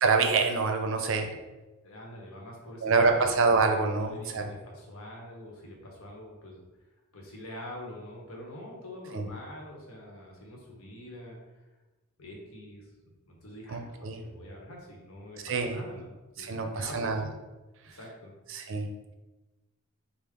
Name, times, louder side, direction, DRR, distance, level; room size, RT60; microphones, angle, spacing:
voice 1, 0.0-1.3 2.8-4.5 9.1-9.2 13.7-14.2 15.4-15.8 16.4-17.2 18.5-18.9, right 4 dB, 65° right, 5 dB, 0.5 m, -26 dB
voice 2, 1.8-3.3 3.9-6.6 7.1-11.4 12.2-12.9 13.3-13.8 14.2-17.3 17.9-18.3, left 1 dB, 80° left, -1 dB, 1.0 m, -45 dB
5.1 x 2.1 x 3.6 m, 1.1 s
head